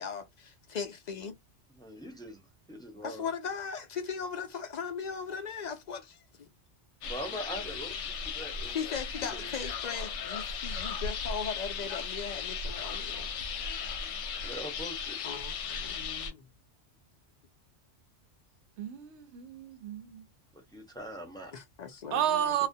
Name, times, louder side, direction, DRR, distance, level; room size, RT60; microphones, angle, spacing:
voice 1, 0.0-1.3 3.0-6.5 8.6-13.3 15.2-16.5 21.5-22.7, left 6 dB, 60° left, 0.4 m, -38 dB
voice 2, 1.7-2.4 2.7-3.3 7.0-8.9 9.2-9.5 14.4-15.2 20.5-21.5, equal, 5° left, 0.6 m, -42 dB
sound 1, 7.0-16.3, left 5 dB, 80° left, 0.9 m, -36 dB
voice 3, 18.8-20.2 22.1-22.7, right 10 dB, 75° right, 0.8 m, -31 dB
2.3 x 2.1 x 2.5 m
omnidirectional pair, 1.2 m